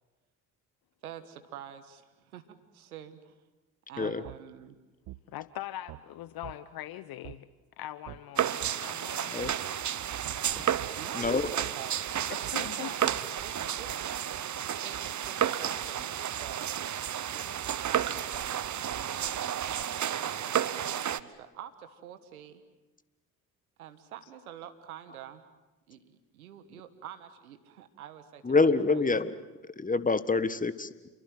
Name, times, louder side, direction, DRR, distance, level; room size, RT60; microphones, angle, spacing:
voice 1, 1.0-2.5 2.7-3.3 3.9-4.8 11.0-14.2 14.8-16.7 17.3-19.5 20.2-22.6 23.8-25.4 25.9-29.0, right 10 dB, 90° right, 1.6 m, -47 dB
sound 1, 4.2-4.4 5.1-5.2 5.9-6.0 6.4-6.6 7.2-7.4 8.1-8.2 8.6-8.8 9.4-9.6 10.2-10.4 10.8-10.9 11.6-11.7 12.4-12.6, right 17 dB, 60° right, 1.0 m, -44 dB
voice 2, 5.3-7.5 7.8-9.4 12.3-12.9, left 13 dB, 60° left, 0.9 m, -41 dB
sound 2, 8.4-21.2, right 10 dB, 45° right, 1.1 m, -32 dB
voice 3, 11.1-11.5 28.4-29.4 29.6-31.1, left 3 dB, 20° left, 1.6 m, -26 dB
29.0 x 23.5 x 7.8 m
hypercardioid pair, 50°, 42 cm